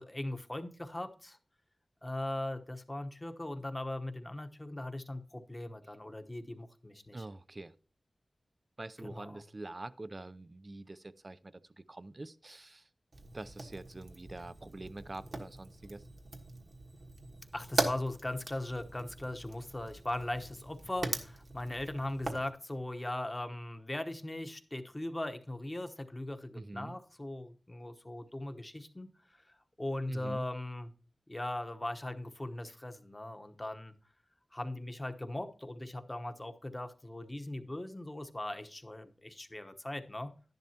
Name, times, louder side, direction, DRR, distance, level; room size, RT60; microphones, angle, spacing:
voice 1, 0.0-1.4 2.0-7.3 9.0-9.4 17.5-30.9 31.3-33.9 34.5-40.3, left 1 dB, 20° left, 8 dB, 1.0 m, -39 dB
voice 2, 7.1-7.7 8.8-12.9 13.3-16.0 26.5-27.0 30.1-30.5, right 2 dB, 35° right, 15 dB, 0.5 m, -45 dB
Fire, 13.1-22.5, right 2 dB, 65° right, 1.3 m, -40 dB
11.5 x 10.5 x 2.9 m, 0.38 s
wide cardioid pair, 85°, 0 cm